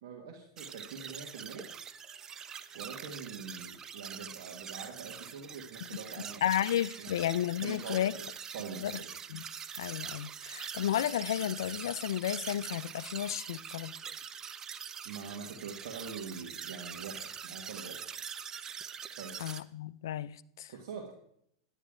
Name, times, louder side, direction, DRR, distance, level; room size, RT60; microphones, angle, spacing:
voice 1, 0.0-1.7 2.7-6.4 7.0-7.2 7.6-9.1 15.0-18.0 19.2-19.6 20.7-21.1, right 5 dB, 70° right, 1.7 m, -44 dB
sound 1, 0.6-19.6, right 7 dB, 25° right, 0.5 m, -44 dB
voice 2, 6.4-8.1 8.8-8.9 9.3-9.4 9.8-13.9 19.4-20.7, left 11 dB, 85° left, 0.4 m, -32 dB
10.5 x 10.0 x 3.7 m
supercardioid pair, 130°, 2 cm